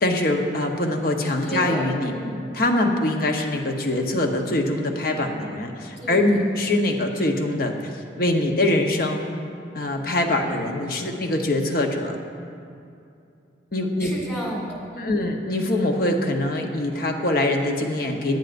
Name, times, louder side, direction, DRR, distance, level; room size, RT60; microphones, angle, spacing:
voice 1, 0.0-2.1 2.5-9.2 9.7-12.2 13.7-14.1 15.0-18.4, left 1 dB, 50° left, 3 dB, 0.9 m, -23 dB
voice 2, 1.4-2.4 4.1-4.3 6.0-6.4 14.0-15.1, equal, 15° left, -4 dB, 1.9 m, -32 dB
17.0 x 10.5 x 2.6 m, 2.5 s
head